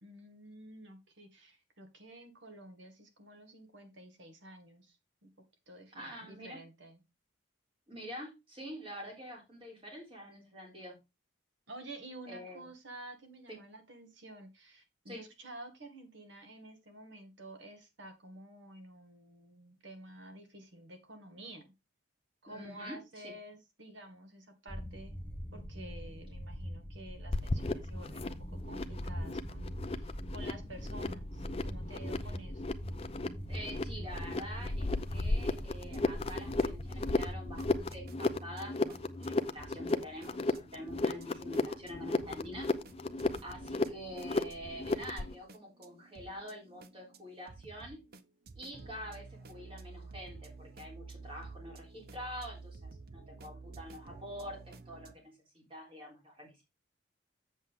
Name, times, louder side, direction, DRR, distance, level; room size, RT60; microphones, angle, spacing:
voice 1, 0.0-5.0 5.2-5.3 5.7-7.0 11.7-21.7 22.4-25.2 25.5-32.8, right 1 dB, 70° right, 5 dB, 2.0 m, -51 dB
voice 2, 5.9-6.6 7.9-11.0 12.3-12.7 13.5-13.6 15.1-15.2 22.5-23.3 33.5-42.7 43.4-48.0 48.6-56.6, equal, 30° right, -1 dB, 3.5 m, -46 dB
sound 1, 24.7-37.8, equal, 10° left, 1.0 m, -42 dB
sound 2, 27.3-45.3, left 2 dB, 30° left, 0.6 m, -35 dB
sound 3, 35.5-55.1, right 3 dB, 50° right, 0.7 m, -52 dB
7.6 x 7.3 x 3.6 m, 0.24 s
head